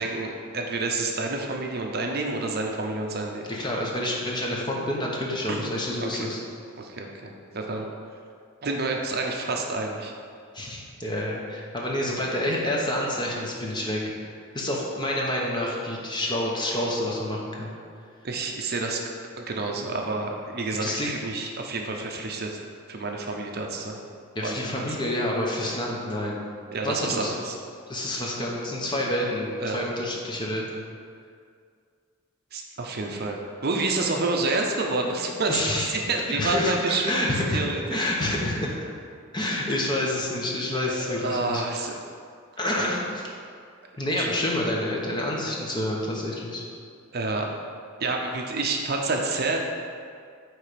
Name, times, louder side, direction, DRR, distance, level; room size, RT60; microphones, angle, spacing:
voice 1, 0.0-3.5 5.5-5.6 6.0-6.3 6.8-7.9 8.6-10.1 18.2-19.0 19.4-22.6 22.9-24.0 24.4-25.0 26.7-27.6 29.6-29.8 32.5-35.6 35.9-37.2 37.5-38.0 41.1-41.9 44.2-44.3 47.1-47.5 48.0-49.6, right 3 dB, 50° right, 1 dB, 0.6 m, -28 dB
voice 2, 3.5-6.4 10.5-17.7 20.8-21.1 24.3-26.4 26.8-27.3 27.9-30.8 35.5-35.9 36.3-37.6 37.9-38.7 39.3-41.6 42.6-43.2 44.0-46.6, left 1 dB, 20° left, -2 dB, 0.9 m, -28 dB
8.9 x 3.3 x 5.1 m, 2.2 s
head